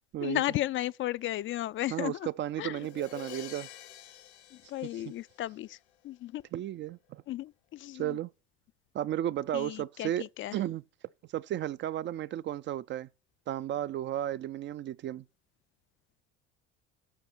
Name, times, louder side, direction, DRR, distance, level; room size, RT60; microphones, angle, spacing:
voice 1, 0.2-2.3 2.6-2.9 4.5-5.8 6.0-6.4 7.3-8.2 9.5-10.6, left 15 dB, 40° left, 0.4 m, -34 dB
voice 2, 1.9-3.7 4.9-5.0 6.5-7.2 7.9-8.3 8.9-10.2 10.5-10.8 11.3-13.1 13.5-15.2, right 12 dB, 35° right, 0.4 m, -33 dB
Crash cymbal, 2.8-5.7, left 13 dB, 85° left, 1.4 m, -48 dB
9.2 x 6.0 x 6.0 m
hypercardioid pair, 80°, 33 cm